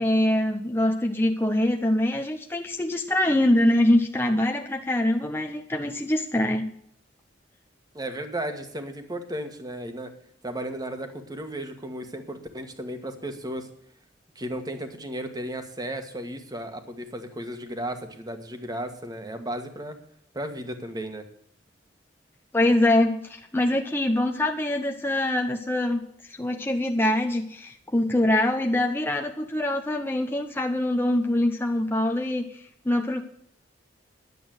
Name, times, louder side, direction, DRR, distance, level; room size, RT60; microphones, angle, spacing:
voice 1, 0.0-6.7 22.5-26.0 26.3-33.2, left 1 dB, 15° left, 3 dB, 0.8 m, -24 dB
voice 2, 7.9-10.1 10.4-13.7 14.3-20.0 20.3-21.3, right 1 dB, 20° right, 7 dB, 1.6 m, -34 dB
11.0 x 8.4 x 7.7 m, 0.67 s
head